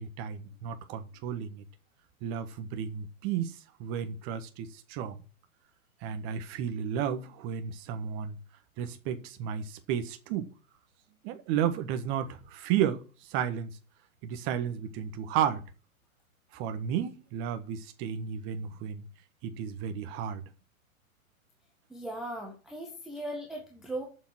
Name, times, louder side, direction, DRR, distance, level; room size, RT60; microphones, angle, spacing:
voice 1, 0.0-1.6 2.2-5.1 6.0-8.4 8.8-10.5 11.2-13.0 13.3-13.7 14.2-15.6 16.5-19.0 19.4-20.4, right 9 dB, 30° right, 1.3 m, -33 dB
voice 2, 21.9-24.0, right 1 dB, ahead, 0.4 m, -38 dB
7.2 x 6.6 x 7.6 m
hypercardioid pair, 130°, 43 cm